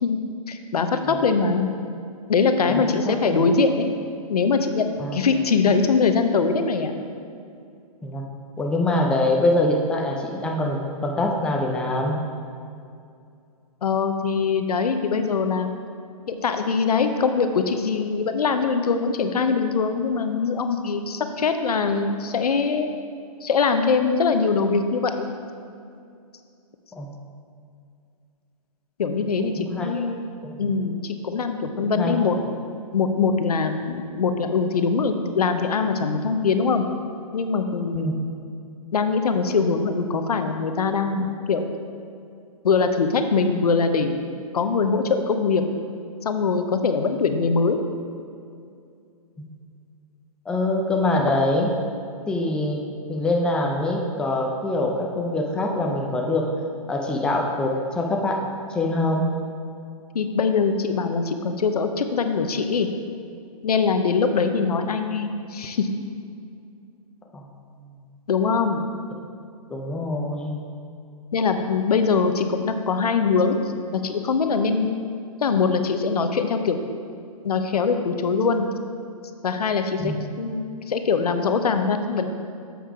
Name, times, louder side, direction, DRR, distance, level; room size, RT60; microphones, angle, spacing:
voice 1, 0.5-1.7 2.3-3.9 4.3-4.9 5.1-6.9 13.8-15.7 16.3-22.9 23.4-25.3 29.0-30.3 30.6-32.4 32.9-36.8 37.3-38.1 38.9-41.6 42.6-44.2 44.5-45.6 46.2-47.8 60.1-62.9 63.6-65.9 68.3-68.8 71.3-73.6 73.9-74.9 75.4-76.8 77.4-78.7 79.4-82.3, left 5 dB, 90° left, 7 dB, 0.7 m, -22 dB
voice 2, 2.7-3.4 5.0-5.2 8.0-8.2 8.6-12.2 26.9-27.1 29.6-30.1 30.4-30.7 31.8-32.4 37.9-38.1 49.4-49.5 50.5-51.7 52.3-56.5 56.9-59.3 67.3-67.4 69.7-70.6 80.0-80.2, left 2 dB, 5° left, 0 dB, 0.5 m, -24 dB
7.2 x 5.6 x 4.8 m, 2.4 s
hypercardioid pair, 140°, 19 cm